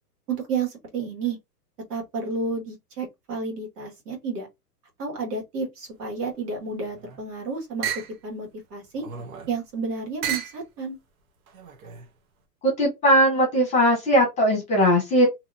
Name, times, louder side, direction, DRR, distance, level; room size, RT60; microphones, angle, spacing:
voice 1, 0.3-1.4 1.9-4.5 5.0-7.9 8.2-9.0 9.5-11.0, right 4 dB, 75° right, 1.8 m, -31 dB
sound 1, 6.7-7.3 7.8-8.2 8.9-9.6 10.2-10.6 11.5-12.1, right 8 dB, 60° right, 1.0 m, -33 dB
voice 2, 12.6-15.3, equal, 15° left, 1.1 m, -19 dB
2.8 x 2.7 x 2.6 m
hypercardioid pair, 155°, 48 cm